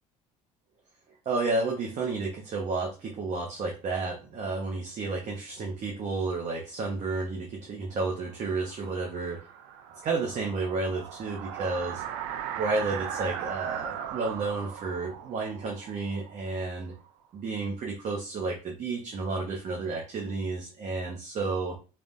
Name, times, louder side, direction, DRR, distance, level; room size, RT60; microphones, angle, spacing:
voice 1, 1.2-9.4 10.0-12.0 12.6-16.9 17.3-21.8, right 3 dB, 50° right, 0 dB, 1.3 m, -31 dB
sound 1, 8.4-17.1, right 9 dB, 85° right, 0.5 m, -38 dB
4.7 x 3.5 x 2.6 m, 0.32 s
supercardioid pair, 85°, 16 cm